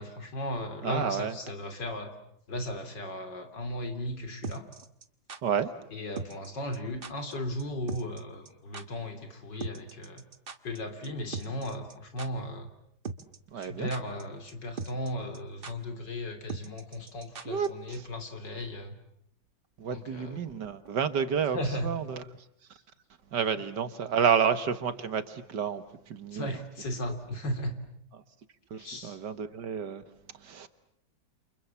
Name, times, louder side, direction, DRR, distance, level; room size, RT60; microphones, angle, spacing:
voice 1, 0.0-2.1 2.5-4.7 5.9-10.2 10.6-12.7 13.6-19.0 19.9-20.4 21.5-21.9 26.3-27.7 28.7-29.2, left 1 dB, 65° left, 3.7 m, -36 dB
voice 2, 0.8-1.3 5.4-5.7 13.5-13.9 17.5-17.7 19.8-21.6 21.8-22.2 23.3-26.5 28.7-30.0 30.4-30.7, right 7 dB, 65° right, 1.9 m, -30 dB
sound 1, 4.4-5.4 6.2-6.5 6.7-6.8 7.0-7.3 7.6-7.7 7.9-8.2 8.4-8.5 8.7-8.8 9.6-10.8 11.0-11.1 11.3-11.9 12.2-12.3 13.0-13.4 13.6-14.2 14.5-14.6 14.8-15.1 15.3-15.4 15.6-15.7 16.5-17.7 17.9-18.0, right 4 dB, 35° right, 1.3 m, -39 dB
29.0 x 28.5 x 7.2 m
omnidirectional pair, 2.1 m